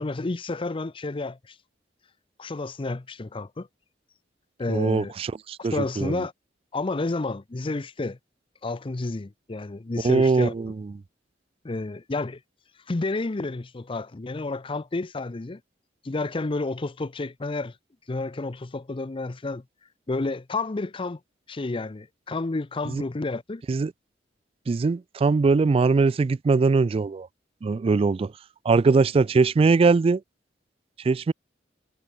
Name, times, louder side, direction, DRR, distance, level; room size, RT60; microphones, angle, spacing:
voice 1, 0.0-1.6 2.4-3.7 4.6-5.1 5.6-6.3 6.7-8.2 8.6-10.5 11.6-12.4 12.9-15.6 16.0-17.7 18.1-19.6 20.1-21.2 21.5-23.6, left 3 dB, 30° left, 0.6 m, -30 dB
voice 2, 4.7-6.2 10.0-10.9 22.9-23.0 23.7-23.9 24.7-27.3 27.6-28.3 28.7-30.2 31.0-31.3, right 4 dB, 30° right, 0.3 m, -21 dB
head